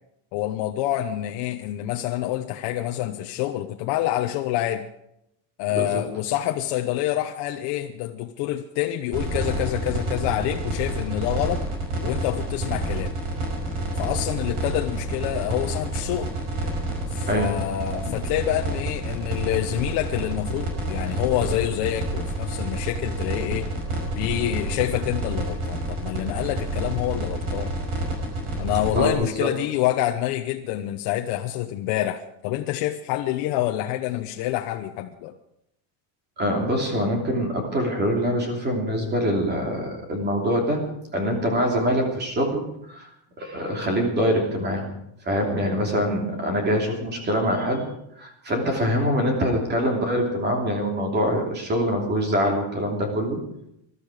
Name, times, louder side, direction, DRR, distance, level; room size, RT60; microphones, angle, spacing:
voice 1, 0.3-4.8 5.6-11.6 12.0-13.1 14.0-16.3 17.1-23.7 24.2-27.7 28.6-35.3, left 13 dB, 55° left, 4 dB, 1.0 m, -27 dB
voice 2, 5.7-6.0 17.3-17.6 28.9-29.5 36.4-40.8 41.1-43.1 43.4-44.9 45.2-47.9 48.2-53.4, equal, 20° right, 2 dB, 3.0 m, -24 dB
sound 1, 9.1-29.1, right 2 dB, 45° right, 5.6 m, -28 dB
20.0 x 12.5 x 5.0 m, 0.79 s
cardioid pair, 175°, 48 cm